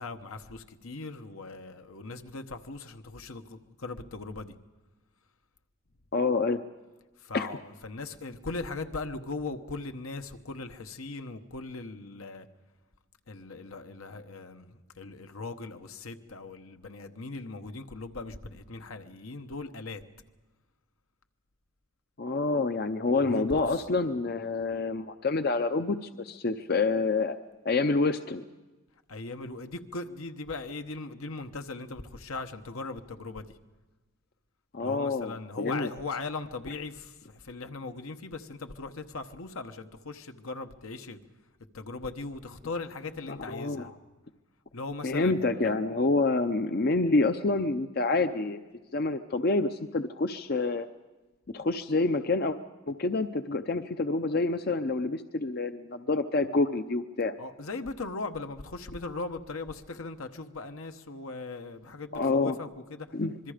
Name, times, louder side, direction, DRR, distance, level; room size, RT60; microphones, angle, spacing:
voice 1, 0.0-4.5 7.2-12.5 13.3-20.0 23.2-23.9 29.1-33.6 34.8-41.2 41.7-43.9 44.7-45.7 57.4-63.2 63.4-63.5, left 3 dB, 80° left, 7 dB, 1.1 m, -39 dB
voice 2, 6.1-6.6 7.3-7.5 22.2-27.4 27.6-28.4 34.7-35.9 43.5-43.8 45.0-48.6 48.9-50.9 51.5-52.6 52.9-57.3 62.1-62.6 63.1-63.3, left 3 dB, 45° left, 9 dB, 0.6 m, -27 dB
26.0 x 21.5 x 5.0 m, 1.2 s
head